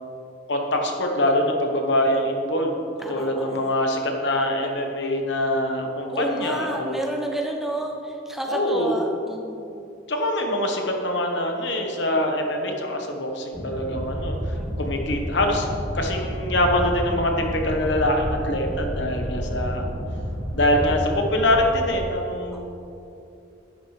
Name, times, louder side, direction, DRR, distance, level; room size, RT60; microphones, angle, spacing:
voice 1, 0.5-2.8 3.1-7.0 8.5-8.9 10.1-14.3 14.8-15.7 15.9-19.9 20.5-22.6, left 1 dB, 60° left, 2 dB, 1.2 m, -24 dB
voice 2, 3.0-3.6 6.1-9.7 14.5-14.7 19.4-19.7 22.5-22.6, right 1 dB, ahead, 0 dB, 0.6 m, -31 dB
sound 1, 13.5-21.7, equal, 20° left, 2.0 m, -30 dB
11.0 x 9.5 x 3.3 m, 2.7 s
head